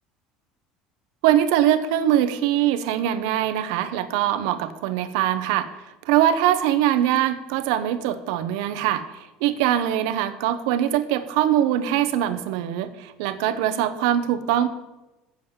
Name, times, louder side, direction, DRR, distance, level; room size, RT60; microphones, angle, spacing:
voice 1, 1.2-5.7 6.1-9.0 9.4-14.7, right 11 dB, 85° right, 12 dB, 0.9 m, -22 dB
7.4 x 7.4 x 7.9 m, 1.0 s
cardioid pair, 175°, 3 cm